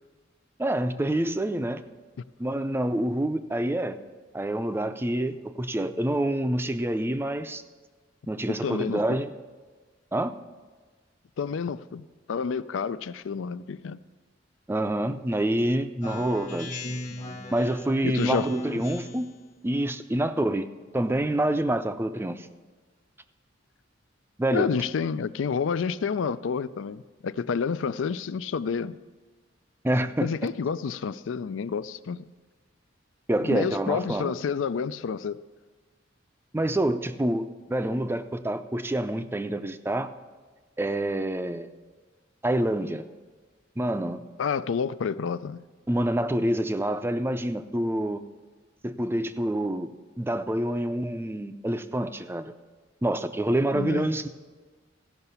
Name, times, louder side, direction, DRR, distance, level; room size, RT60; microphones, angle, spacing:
voice 1, 0.6-1.8 2.4-4.0 4.3-7.6 8.3-9.3 10.1-10.3 14.7-16.7 17.5-19.3 19.6-20.7 20.9-22.5 24.4-24.7 29.8-30.3 33.3-34.3 36.5-40.1 40.8-41.7 42.4-43.0 43.8-44.2 45.9-48.2 48.8-49.9 50.2-52.5 53.0-54.3, right 1 dB, 10° right, 0.4 m, -27 dB
voice 2, 8.5-9.0 11.4-14.0 18.0-18.5 24.5-29.0 30.2-32.3 33.5-35.4 44.4-45.6 53.7-54.1, left 6 dB, 80° left, 0.4 m, -29 dB
Speech synthesizer, 16.0-19.3, left 1 dB, 40° left, 1.1 m, -36 dB
15.0 x 5.8 x 5.5 m
head